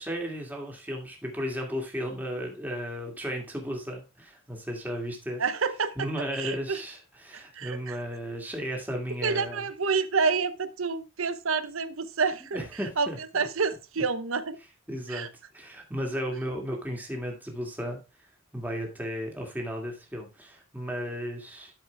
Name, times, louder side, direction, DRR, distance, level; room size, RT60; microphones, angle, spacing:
voice 1, 0.0-5.4 6.0-9.6 12.5-13.2 14.9-15.3 15.5-18.0 18.5-21.7, equal, 10° right, 1 dB, 2.3 m, -34 dB
voice 2, 5.4-6.0 6.3-6.8 7.3-8.0 9.2-12.6 13.0-14.6 15.1-15.3, right 5 dB, 75° right, 13 dB, 0.9 m, -28 dB
12.0 x 5.2 x 3.4 m, 0.28 s
head